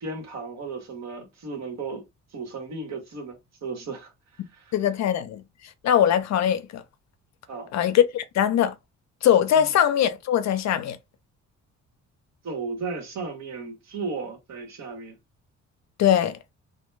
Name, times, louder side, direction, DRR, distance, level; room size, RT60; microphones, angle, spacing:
voice 1, 0.0-2.0 2.3-4.1 4.5-4.8 7.5-7.7 9.5-9.7 12.4-15.1, right 4 dB, 60° right, 1.1 m, -35 dB
voice 2, 4.7-5.4 5.8-6.8 7.7-8.7 9.2-11.0 16.0-16.4, left 10 dB, 60° left, 0.5 m, -21 dB
2.2 x 2.2 x 3.1 m
cardioid pair, 90°, 30 cm